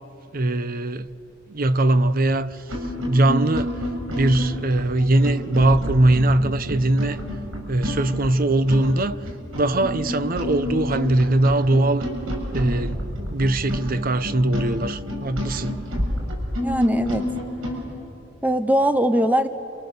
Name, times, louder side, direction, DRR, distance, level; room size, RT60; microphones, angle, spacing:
voice 1, 0.3-1.1 1.5-2.6 3.1-3.8 4.1-7.2 7.7-9.2 9.5-12.1 12.5-15.8, right 1 dB, 45° right, 0.8 m, -21 dB
sound 1, 2.7-17.8, equal, 90° right, 6.7 m, -29 dB
voice 2, 16.6-17.3 18.4-19.5, equal, 10° right, 0.8 m, -20 dB
29.0 x 27.5 x 7.0 m
head